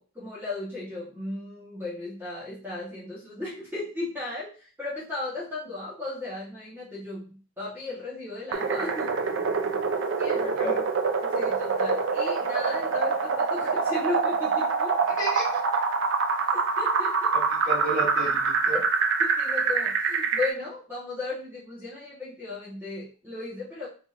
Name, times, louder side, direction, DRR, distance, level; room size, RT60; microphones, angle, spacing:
voice 1, 0.0-7.3 7.6-9.1 10.2-10.5 11.2-15.0 16.8-17.3 19.2-23.9, left 2 dB, 10° right, -8 dB, 1.1 m, -35 dB
sound 1, 8.5-20.5, right 5 dB, 55° right, 0.4 m, -25 dB
voice 2, 10.3-10.8 15.2-15.6 17.3-18.8, equal, 35° left, -6 dB, 1.6 m, -33 dB
3.7 x 2.9 x 2.4 m, 0.39 s
head